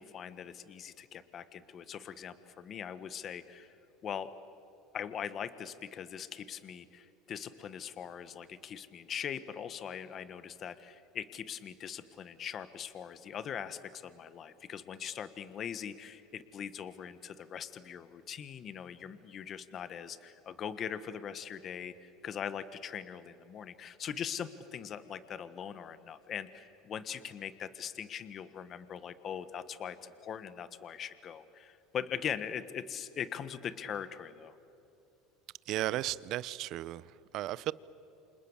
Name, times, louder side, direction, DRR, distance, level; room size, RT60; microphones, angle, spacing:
voice 1, 0.0-3.7 4.0-4.3 4.9-34.5, left 8 dB, 40° left, 1.5 m, -41 dB
voice 2, 35.7-37.7, right 15 dB, 55° right, 0.7 m, -35 dB
28.5 x 27.0 x 7.3 m
supercardioid pair, 115°, 0 cm